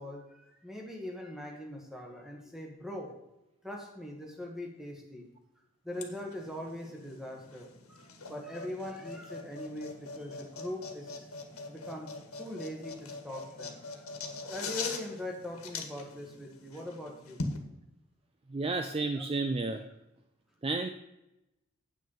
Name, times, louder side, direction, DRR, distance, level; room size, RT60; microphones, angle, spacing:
voice 1, 0.0-3.1 3.6-5.3 5.8-11.3 11.7-17.4 19.1-19.2, left 1 dB, ahead, 0 dB, 1.6 m, -42 dB
sound 1, 5.9-17.6, left 3 dB, 85° left, 1.5 m, -42 dB
voice 2, 18.5-19.9 20.6-20.9, right 3 dB, 25° right, 8 dB, 0.4 m, -31 dB
8.6 x 6.4 x 5.5 m, 0.93 s
head